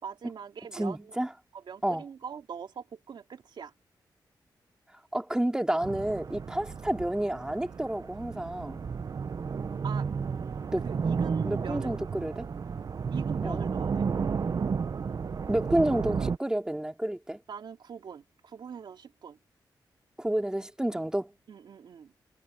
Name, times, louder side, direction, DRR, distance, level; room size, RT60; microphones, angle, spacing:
voice 1, 0.0-1.1 1.5-3.7 9.8-10.1 10.8-11.9 13.1-14.1 17.5-19.4 21.5-22.1, right 7 dB, 75° right, 2.9 m, -42 dB
voice 2, 0.7-1.3 1.8-2.0 5.1-8.9 10.7-10.8 11.4-12.5 13.4-13.6 15.5-17.4 20.2-21.3, right 1 dB, 10° right, 2.7 m, -30 dB
sound 1, 5.8-16.4, right 5 dB, 50° right, 0.8 m, -32 dB
cardioid pair, 95°, 8 cm